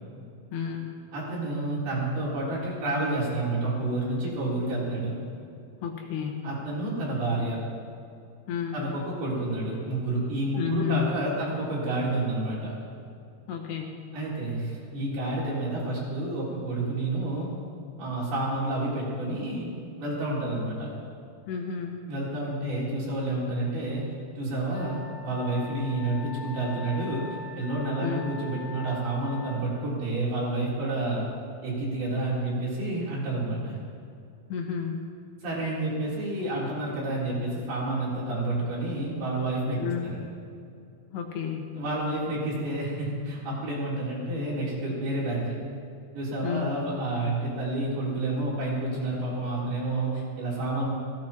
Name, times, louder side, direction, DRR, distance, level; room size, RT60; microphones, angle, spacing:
voice 1, 0.5-1.0 5.8-6.5 8.5-8.9 10.6-11.2 13.5-14.1 21.5-22.0 28.0-28.3 34.5-35.1 39.8-40.1 41.1-41.7 46.4-46.7, left 7 dB, 85° left, 2 dB, 3.6 m, -31 dB
voice 2, 1.1-5.2 6.4-7.6 8.7-12.7 14.1-17.5 18.0-19.7 20.0-20.9 22.1-24.1 24.4-27.3 27.6-31.3 31.6-33.8 35.4-39.8 40.1-40.2 41.7-45.6 46.1-50.9, right 2 dB, 70° right, -6 dB, 6.0 m, -29 dB
Wind instrument woodwind instrument, 24.7-29.6, left 3 dB, 60° left, 1.0 m, -42 dB
17.0 x 16.0 x 4.5 m, 2.5 s
omnidirectional pair, 4.6 m